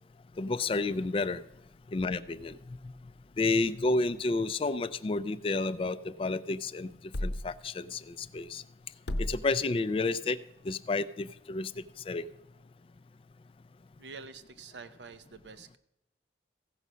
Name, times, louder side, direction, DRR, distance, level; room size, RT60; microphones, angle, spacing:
voice 1, 0.4-1.4 1.9-2.5 3.4-6.9 7.2-8.6 9.2-10.4 10.7-11.7 12.1-12.3, left 3 dB, 30° left, 14 dB, 0.3 m, -30 dB
sound 1, 10.3-14.1, left 1 dB, 75° left, 0.7 m, -44 dB
voice 2, 14.0-15.8, right 4 dB, 80° right, 11 dB, 0.7 m, -47 dB
15.5 x 5.5 x 6.1 m, 0.84 s
head